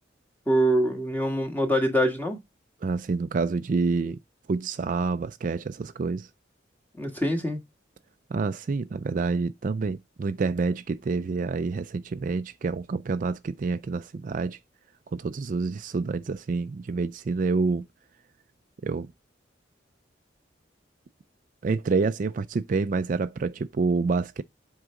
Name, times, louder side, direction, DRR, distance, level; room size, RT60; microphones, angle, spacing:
voice 1, 0.5-2.4 6.9-7.6, equal, 10° left, 1.6 m, -24 dB
voice 2, 2.8-4.2 4.5-6.3 8.3-14.6 15.1-17.9 18.8-19.1 21.6-24.4, right 4 dB, 45° right, 0.4 m, -27 dB
8.0 x 4.7 x 3.7 m
head